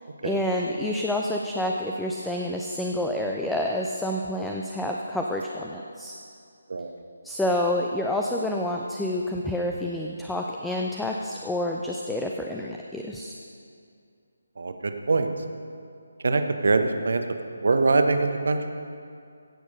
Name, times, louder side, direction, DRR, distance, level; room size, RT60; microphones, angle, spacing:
voice 1, 0.2-6.1 7.2-13.3, left 1 dB, 5° left, 0 dB, 0.4 m, -28 dB
voice 2, 14.6-15.3 16.2-17.2 17.5-18.6, right 3 dB, 55° right, 7 dB, 0.8 m, -23 dB
16.0 x 6.3 x 5.4 m, 2.4 s
figure-of-eight pair, 150°, 0 cm